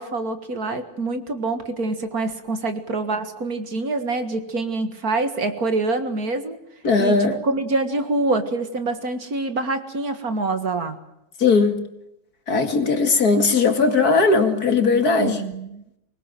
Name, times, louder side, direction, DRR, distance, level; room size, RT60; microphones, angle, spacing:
voice 1, 0.0-6.6 7.0-7.2 7.4-11.0 15.2-15.8, right 3 dB, 50° right, 8 dB, 2.2 m, -25 dB
voice 2, 6.8-7.4 11.4-11.8 12.5-15.4, left 4 dB, 50° left, 7 dB, 2.5 m, -18 dB
24.0 x 20.5 x 7.7 m, 0.82 s
omnidirectional pair, 2.1 m